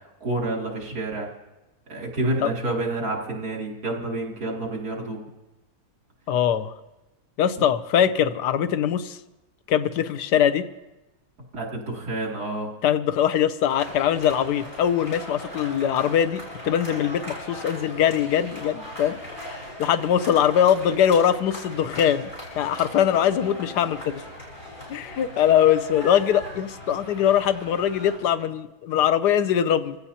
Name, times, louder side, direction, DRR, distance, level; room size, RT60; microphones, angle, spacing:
voice 1, 0.2-1.3 1.9-5.2 11.5-12.7, right 2 dB, 70° right, -2 dB, 3.3 m, -28 dB
voice 2, 6.3-6.7 7.4-9.2 9.7-10.6 12.8-22.3 22.5-24.2 24.9-30.0, left 9 dB, 85° left, 11 dB, 1.3 m, -22 dB
sound 1, 13.7-28.2, left 1 dB, 30° left, 6.0 m, -38 dB
25.5 x 16.0 x 2.8 m, 1.0 s
omnidirectional pair, 1.7 m